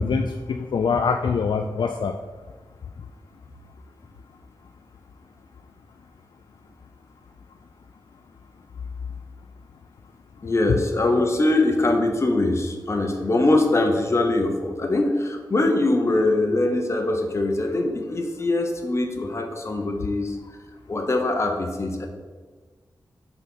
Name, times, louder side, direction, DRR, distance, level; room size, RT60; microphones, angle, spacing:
voice 1, 0.0-2.2, left 5 dB, 75° left, 5 dB, 0.4 m, -24 dB
voice 2, 10.4-20.4 20.9-22.1, left 2 dB, 35° left, 4 dB, 0.8 m, -22 dB
5.4 x 4.0 x 6.0 m, 1.4 s
wide cardioid pair, 115°, 8 cm